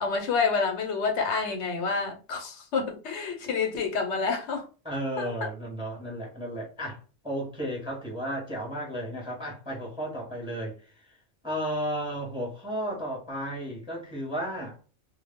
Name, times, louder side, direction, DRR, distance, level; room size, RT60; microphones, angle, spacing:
voice 1, 0.0-4.6 5.2-5.3, left 5 dB, 70° left, 0.9 m, -28 dB
voice 2, 4.8-7.0 7.2-10.8 11.1-11.2 11.4-14.8, equal, 5° right, 0.6 m, -33 dB
2.1 x 2.0 x 3.4 m
omnidirectional pair, 1.2 m